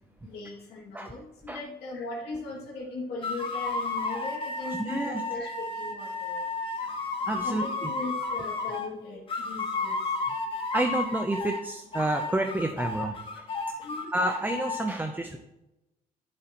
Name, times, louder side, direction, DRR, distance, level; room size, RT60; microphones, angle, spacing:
voice 1, 0.2-6.4 7.4-10.0 13.8-14.1, left 3 dB, 75° left, -3 dB, 2.4 m, -38 dB
sound 1, 3.2-8.9 9.3-11.6 11.9-14.8, left 3 dB, 30° left, 1.7 m, -32 dB
voice 2, 4.7-5.2 6.8-7.0 7.2-7.9 10.7-13.5 14.1-15.4, right 1 dB, 10° right, 5 dB, 0.6 m, -30 dB
11.0 x 7.4 x 3.0 m, 0.93 s
cardioid pair, 110°, 17 cm